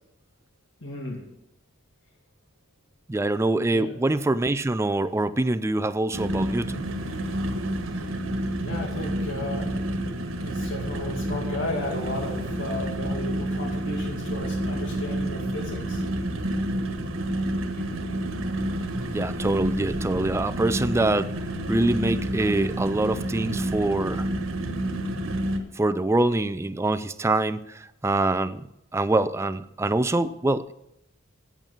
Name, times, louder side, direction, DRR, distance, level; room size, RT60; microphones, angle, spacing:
voice 1, 0.8-1.2 3.7-3.9 8.6-9.7 10.4-16.0, left 1 dB, 65° left, 0 dB, 2.2 m, -34 dB
voice 2, 3.1-6.9 19.1-21.3 21.7-24.3 25.8-28.7 28.9-30.7, right 2 dB, 15° right, 11 dB, 0.4 m, -25 dB
sound 1, 6.1-25.6, right 1 dB, 85° right, 1.5 m, -29 dB
8.8 x 8.2 x 7.3 m, 0.83 s
head